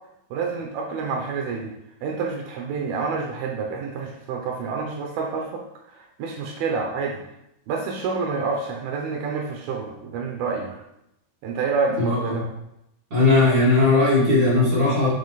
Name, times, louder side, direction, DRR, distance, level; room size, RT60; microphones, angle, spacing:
voice 1, 0.3-1.7 2.0-5.6 6.0-7.2 7.7-10.8 11.4-12.5, right 4 dB, 75° right, 1 dB, 2.5 m, -28 dB
voice 2, 12.0-12.4 13.1-15.1, left 2 dB, 35° right, -9 dB, 2.3 m, -18 dB
7.2 x 5.3 x 4.0 m, 0.83 s
omnidirectional pair, 4.7 m